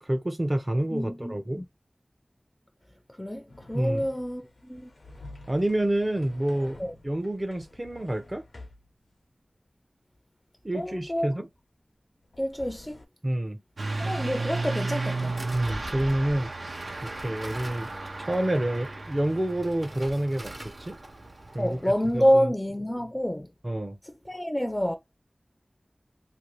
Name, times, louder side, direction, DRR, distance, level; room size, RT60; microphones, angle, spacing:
voice 1, 0.0-1.6 3.7-4.1 5.5-6.8 7.0-8.5 10.6-11.5 13.2-13.6 15.5-16.7 17.0-17.9 18.2-20.5 20.8-21.0 21.5-22.5 23.6-24.0, right 1 dB, 35° right, 0.5 m, -28 dB
voice 2, 0.9-1.6 3.2-4.9 6.8-6.9 10.7-11.3 12.4-13.0 14.0-15.4 21.6-23.5 24.3-25.0, equal, 20° left, 0.4 m, -27 dB
sound 1, 3.5-8.9 12.2-13.0, left 2 dB, 90° left, 0.7 m, -48 dB
Truck / Accelerating revving vroom, 13.8-21.7, right 3 dB, 85° right, 0.6 m, -34 dB
sound 2, 15.1-22.3, right 1 dB, 55° right, 0.8 m, -44 dB
2.6 x 2.5 x 3.0 m
wide cardioid pair, 45°, 0 cm